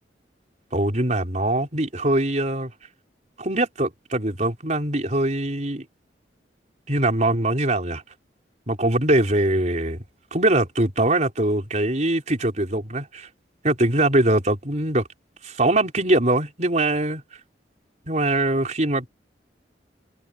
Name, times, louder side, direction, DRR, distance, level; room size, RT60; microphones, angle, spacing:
voice 1, 0.7-2.7 3.4-5.9 6.9-8.0 8.7-10.0 10.3-13.3 13.6-15.0 15.4-17.2 18.1-19.0, right 1 dB, 40° right, 4.7 m, -22 dB
head